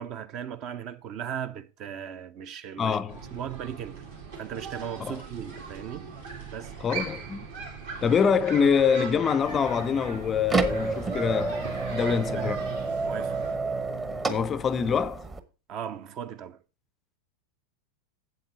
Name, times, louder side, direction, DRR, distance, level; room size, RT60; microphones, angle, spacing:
voice 1, 0.0-3.0 3.3-4.0 4.4-6.1 6.5-6.8 12.1-12.5 13.0-13.5 15.7-16.6, right 9 dB, 35° right, 0.7 m, -37 dB
voice 2, 2.8-3.2 5.0-5.2 6.8-7.4 8.0-11.6 11.9-12.6 14.3-15.2, left 6 dB, 25° left, 0.4 m, -25 dB
sound 1, 3.1-13.6, right 5 dB, 65° right, 3.3 m, -40 dB
sound 2, 9.4-15.4, right 3 dB, 20° right, 1.0 m, -30 dB
7.9 x 7.9 x 4.5 m
figure-of-eight pair, 90°, 0 cm